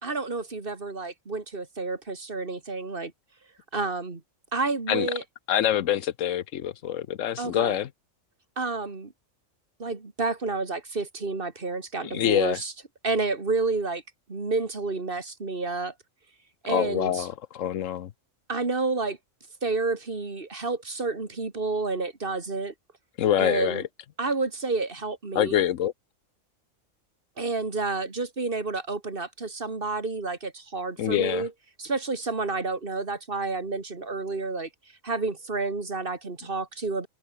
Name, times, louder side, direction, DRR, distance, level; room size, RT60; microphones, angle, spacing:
voice 1, 0.0-3.1 3.7-4.2 4.5-5.2 7.4-7.8 8.6-9.1 9.8-12.7 13.0-14.0 14.3-15.9 16.6-17.3 18.5-19.2 19.6-22.7 23.4-23.8 24.2-25.7 27.4-31.5 31.8-34.7 35.0-37.1, right 3 dB, 45° right, 2.6 m, -30 dB
voice 2, 5.5-7.9 12.0-12.6 16.7-18.1 23.2-23.8 25.3-25.9 31.0-31.5, left 10 dB, 75° left, 1.1 m, -25 dB
omnidirectional pair, 1.4 m